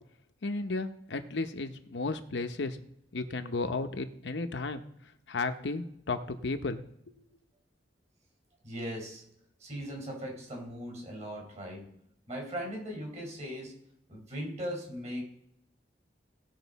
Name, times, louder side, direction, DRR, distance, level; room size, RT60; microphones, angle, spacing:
voice 1, 0.4-2.8 3.1-4.8 5.3-6.8, left 3 dB, 75° left, 8 dB, 0.8 m, -33 dB
voice 2, 8.6-9.2 9.6-11.9 12.3-13.8 14.1-15.2, equal, 40° right, 0 dB, 4.3 m, -39 dB
18.5 x 6.5 x 4.1 m, 0.78 s
head